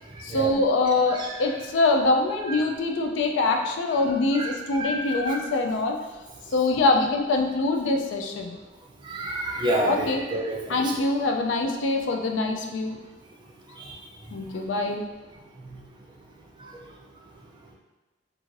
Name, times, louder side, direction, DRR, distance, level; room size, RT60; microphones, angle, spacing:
voice 1, 0.2-6.0 6.5-8.6 9.9-10.2 10.7-13.0 14.3-15.0, left 2 dB, 70° left, 3 dB, 0.3 m, -24 dB
voice 2, 4.8-5.4 9.0-10.9 13.9-14.0, right 1 dB, 25° right, -2 dB, 0.4 m, -29 dB
2.5 x 2.5 x 3.1 m, 1.1 s
head